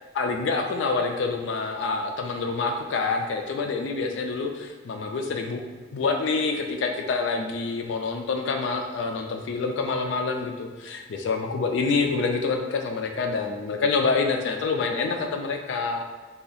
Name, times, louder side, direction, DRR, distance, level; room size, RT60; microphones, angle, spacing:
voice 1, 0.1-5.6 5.9-16.0, left 4 dB, 80° left, 4 dB, 0.3 m, -27 dB
2.7 x 2.3 x 4.0 m, 1.4 s
head